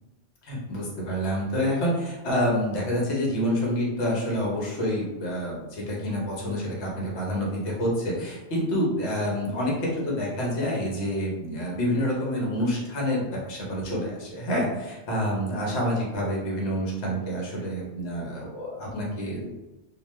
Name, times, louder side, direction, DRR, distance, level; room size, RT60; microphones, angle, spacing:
voice 1, 0.4-19.5, equal, 70° left, -3 dB, 1.1 m, -28 dB
2.7 x 2.2 x 3.1 m, 1.0 s
omnidirectional pair, 1.2 m